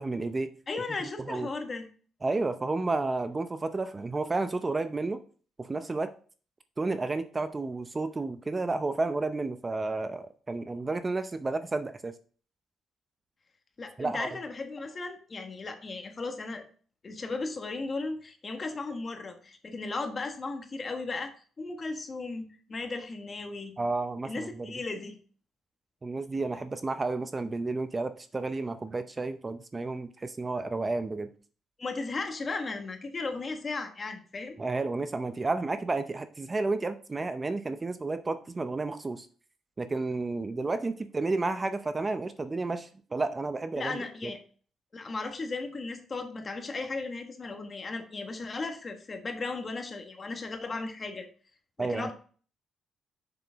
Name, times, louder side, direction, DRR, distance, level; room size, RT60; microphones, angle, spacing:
voice 1, 0.0-0.5 1.2-1.5 2.2-5.2 5.6-6.1 6.8-12.1 14.0-14.3 23.8-24.8 26.0-31.3 34.6-39.3 39.8-44.3 51.8-52.1, right 3 dB, 25° right, 10 dB, 0.6 m, -31 dB
voice 2, 0.7-1.9 13.8-16.6 17.0-21.3 21.6-23.7 24.2-25.2 31.8-34.6 43.7-44.4 44.9-51.3 51.8-52.1, left 3 dB, 35° left, 6 dB, 1.4 m, -36 dB
6.9 x 6.0 x 3.5 m, 0.41 s
cardioid pair, 90°, 0 cm